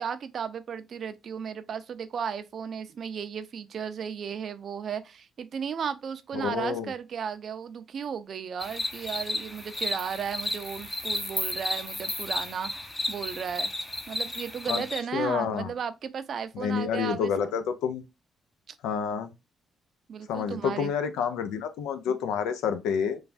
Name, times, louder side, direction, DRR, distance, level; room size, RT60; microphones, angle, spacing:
voice 1, 0.0-13.7 14.1-17.6 18.7-18.8 20.1-20.9, right 7 dB, 55° right, 0.4 m, -35 dB
voice 2, 6.3-6.9 14.7-14.8 15.1-15.7 16.5-18.0 18.8-19.3 20.3-23.2, left 7 dB, 90° left, 0.5 m, -28 dB
sound 1, 8.6-15.0, left 1 dB, 20° left, 0.6 m, -33 dB
3.2 x 2.2 x 2.5 m
cardioid pair, 90°, 0 cm